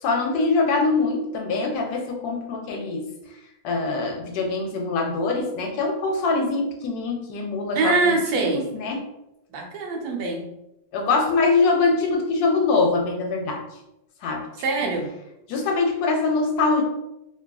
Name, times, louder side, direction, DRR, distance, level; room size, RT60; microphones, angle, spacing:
voice 1, 0.0-3.1 3.6-8.5 8.7-9.0 10.9-13.6 14.2-14.5 14.8-14.9 15.5-16.8, left 3 dB, 75° left, 1 dB, 1.0 m, -23 dB
voice 2, 7.7-8.7 9.5-10.5 14.5-15.1, right 3 dB, 70° right, 0 dB, 1.1 m, -24 dB
2.8 x 2.3 x 2.2 m, 0.87 s
omnidirectional pair, 1.8 m